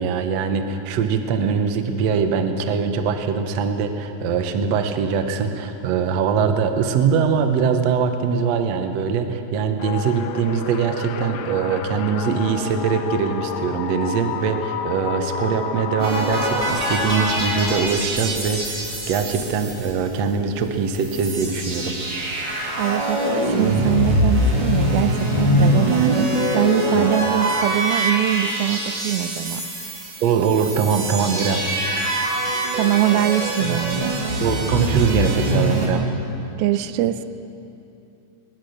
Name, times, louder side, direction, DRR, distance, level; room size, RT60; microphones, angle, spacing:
voice 1, 0.0-18.8 19.1-22.0 27.0-27.1 30.2-31.6 34.4-36.1, right 6 dB, 60° right, 7 dB, 1.9 m, -22 dB
sound 1, 9.8-17.8, left 6 dB, 70° left, 2.5 m, -30 dB
sound 2, 16.0-20.4 20.7-20.8 20.9-35.9, right 1 dB, 30° right, 3.8 m, -23 dB
voice 2, 22.8-29.6 32.7-34.1 36.6-37.2, right 13 dB, 90° right, 12 dB, 2.5 m, -23 dB
22.0 x 19.5 x 6.6 m, 2.8 s
omnidirectional pair, 4.3 m